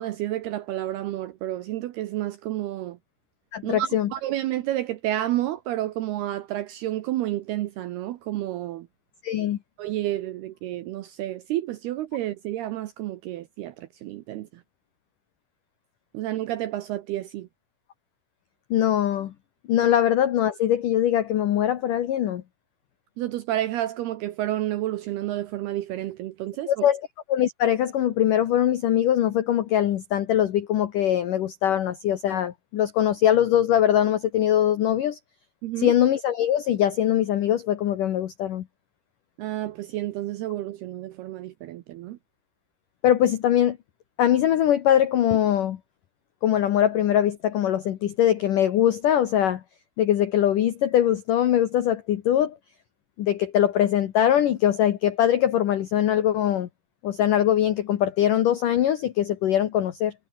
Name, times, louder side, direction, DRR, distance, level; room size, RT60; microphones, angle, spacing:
voice 1, 0.0-3.0 3.6-8.9 9.8-14.5 16.1-17.5 23.2-26.9 35.6-35.9 39.4-42.2, right 14 dB, 75° right, 2.4 m, -30 dB
voice 2, 3.5-4.1 9.2-9.6 18.7-19.3 19.7-22.4 26.7-27.0 27.3-35.2 35.8-38.6 43.0-43.8 44.2-45.8 46.4-49.6 50.0-52.6 53.2-56.7 57.0-60.1, left 11 dB, 75° left, 1.9 m, -22 dB
omnidirectional pair, 5.7 m